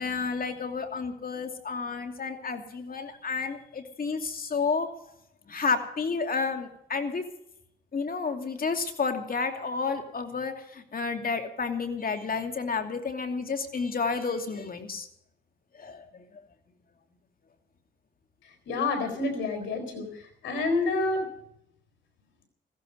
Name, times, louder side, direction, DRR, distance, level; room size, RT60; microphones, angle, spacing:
voice 1, 0.0-4.9 5.5-7.2 7.9-15.1 15.7-16.2, left 4 dB, 50° left, 6 dB, 2.7 m, -31 dB
voice 2, 18.7-21.2, left 3 dB, 90° left, 6 dB, 4.2 m, -28 dB
15.5 x 15.5 x 5.3 m, 0.74 s
cardioid pair, 70°, 19 cm